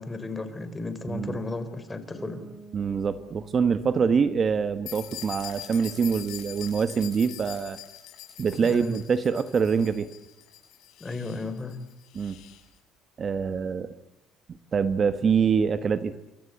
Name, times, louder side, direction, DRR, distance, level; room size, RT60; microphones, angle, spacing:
voice 1, 0.0-2.4 8.6-9.0 11.0-11.7, left 2 dB, 15° left, 10 dB, 4.3 m, -34 dB
voice 2, 1.1-1.4 2.7-7.8 8.4-10.1 12.1-12.4 13.2-13.9 14.7-16.2, right 6 dB, 35° right, 12 dB, 1.2 m, -25 dB
Bass guitar, 2.2-5.9, right 3 dB, 10° right, 2.3 m, -50 dB
sound 1, 4.9-12.6, left 12 dB, 70° left, 6.6 m, -43 dB
28.0 x 25.0 x 8.1 m, 0.82 s
cardioid pair, 105°, 0 cm